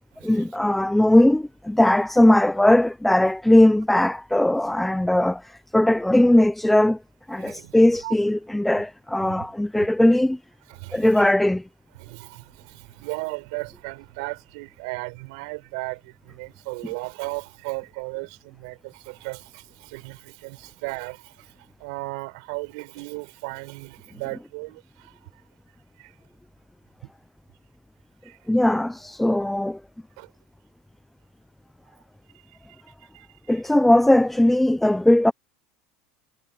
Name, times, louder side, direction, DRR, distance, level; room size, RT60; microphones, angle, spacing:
voice 1, 0.2-7.0 7.3-10.4 10.9-11.6 28.5-29.8 33.5-35.3, left 1 dB, 5° left, 1.0 m, -19 dB
voice 2, 7.4-7.8 8.0-8.1 9.2-9.5 9.8-9.9 10.7-11.3 11.9-25.4 26.0-26.1 28.2-28.4 29.4-29.5 30.2-30.3 32.7-33.6, right 29 dB, 70° right, 6.1 m, -36 dB
supercardioid pair, 110°, 4 cm